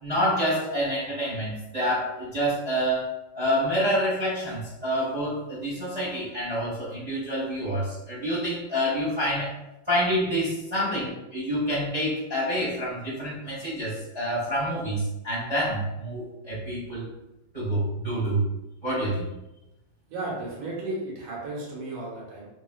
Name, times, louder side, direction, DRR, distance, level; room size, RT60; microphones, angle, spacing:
voice 1, 0.0-9.5 9.9-17.1 17.5-18.4 18.8-19.3, equal, 25° right, -10 dB, 1.0 m, -27 dB
voice 2, 20.1-22.5, right 2 dB, 70° right, -4 dB, 1.7 m, -34 dB
4.0 x 2.3 x 2.4 m, 0.95 s
omnidirectional pair, 2.4 m